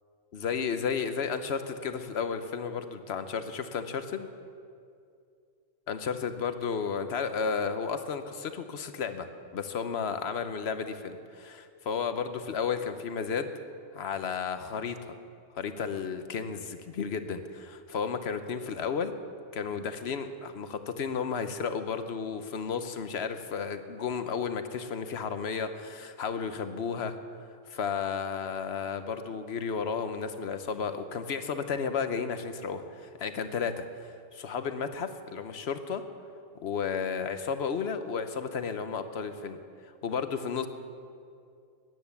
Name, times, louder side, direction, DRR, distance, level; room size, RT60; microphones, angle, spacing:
voice 1, 0.3-4.3 5.9-9.3 9.5-13.5 13.9-15.1 15.5-19.1 19.5-27.2 27.7-36.0 36.6-39.6 39.8-40.7, left 6 dB, 70° left, 9 dB, 1.1 m, -33 dB
13.5 x 10.0 x 7.1 m, 2.4 s
omnidirectional pair, 1.1 m